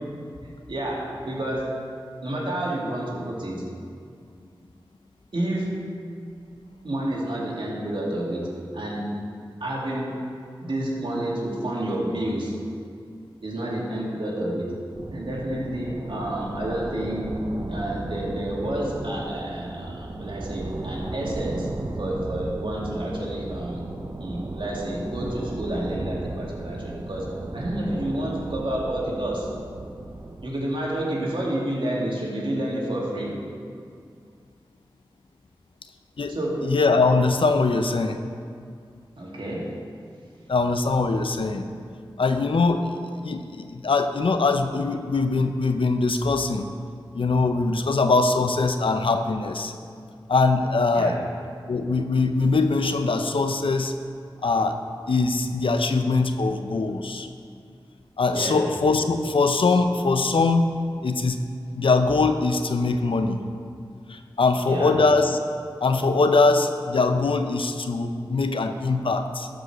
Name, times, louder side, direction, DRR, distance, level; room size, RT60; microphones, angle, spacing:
voice 1, 0.7-1.8 2.2-3.6 5.3-5.8 6.8-9.1 9.6-10.2 10.6-12.5 13.4-14.8 15.1-17.3 17.7-21.7 22.0-23.8 24.2-29.5 30.4-33.4 36.3-36.7 39.2-39.7 50.9-51.2 58.3-58.6 64.7-65.0, right 1 dB, 65° right, -4 dB, 2.6 m, -29 dB
sound 1, 14.9-30.5, right 2 dB, 45° right, 0.9 m, -35 dB
voice 2, 36.6-38.2 40.5-41.6 42.2-43.0 43.2-46.7 47.1-49.7 50.3-51.1 51.7-53.9 54.4-54.8 55.1-57.3 58.2-60.7 61.0-61.4 61.8-63.4 64.1-65.4 65.8-69.5, left 3 dB, 75° left, 7 dB, 0.7 m, -22 dB
12.5 x 5.2 x 6.5 m, 2.3 s
cardioid pair, 40°, 9 cm